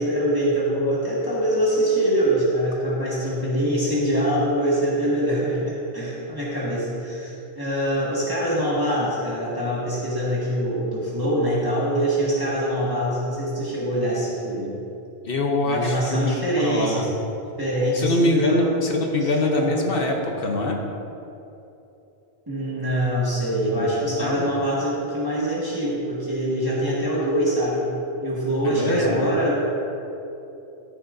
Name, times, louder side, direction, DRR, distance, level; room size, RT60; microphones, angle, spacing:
voice 1, 0.0-14.8 15.6-17.1 17.6-18.8 19.2-19.7 22.5-27.9 28.2-29.6, right 1 dB, 20° right, -8 dB, 1.8 m, -24 dB
voice 2, 15.2-17.1 17.9-20.8 23.7-23.9 24.2-24.5 28.6-29.3, left 2 dB, 65° left, 1 dB, 1.0 m, -24 dB
12.5 x 10.5 x 2.6 m, 2.9 s
omnidirectional pair, 1.1 m